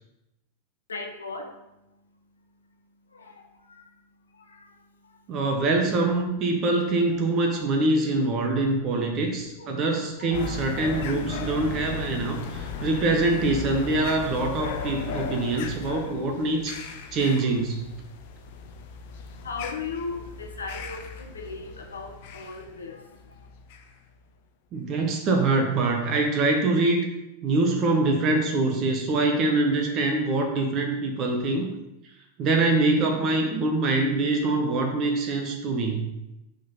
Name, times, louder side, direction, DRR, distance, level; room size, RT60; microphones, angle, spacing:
voice 1, 0.9-5.4 9.4-9.8 10.2-10.4 19.3-23.5, left 4 dB, 70° left, 3 dB, 0.9 m, -39 dB
voice 2, 5.3-17.9 24.7-27.1 27.4-31.7 32.4-36.2, right 2 dB, 35° right, 2 dB, 0.9 m, -24 dB
sound 1, 10.3-24.1, left 5 dB, 50° left, 0.6 m, -37 dB
5.2 x 3.9 x 5.4 m, 0.93 s
figure-of-eight pair, 90°, 0 cm